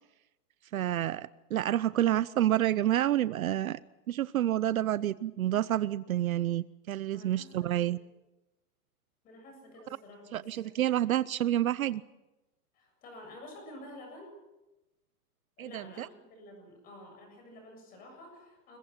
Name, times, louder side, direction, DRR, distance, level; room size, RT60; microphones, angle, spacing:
voice 1, 0.7-3.8 4.1-8.0 10.3-12.0 15.6-16.1, right 12 dB, 60° right, 18 dB, 0.7 m, -29 dB
voice 2, 7.1-7.9 9.2-10.8 12.7-14.4 15.6-18.8, left 1 dB, 20° left, 4 dB, 7.4 m, -50 dB
29.0 x 22.0 x 5.9 m, 0.99 s
hypercardioid pair, 175°, 47 cm